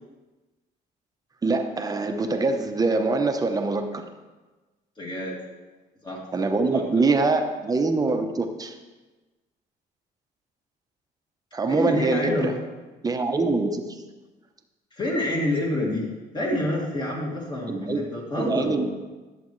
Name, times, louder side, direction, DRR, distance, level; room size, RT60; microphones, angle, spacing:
voice 1, 1.4-4.0 6.3-8.7 11.5-12.5 13.0-14.0 17.7-18.1 18.4-18.9, right 3 dB, 20° right, 6 dB, 0.8 m, -24 dB
voice 2, 5.0-5.4 6.0-6.8 11.7-12.5 14.9-16.1 16.3-18.9, left 1 dB, 25° left, -2 dB, 2.4 m, -28 dB
11.0 x 7.6 x 3.2 m, 1.2 s
cardioid pair, 110°, 17 cm